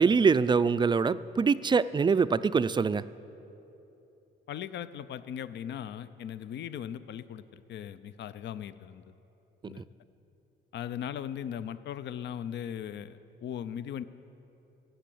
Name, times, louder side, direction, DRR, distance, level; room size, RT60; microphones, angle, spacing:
voice 1, 0.0-3.0 9.8-9.9, right 5 dB, 25° right, 15 dB, 0.4 m, -24 dB
voice 2, 4.5-9.0 9.7-9.9 10.7-14.0, left 9 dB, 65° left, 14 dB, 0.5 m, -38 dB
15.0 x 7.8 x 8.5 m, 2.9 s
cardioid pair, 90°, 20 cm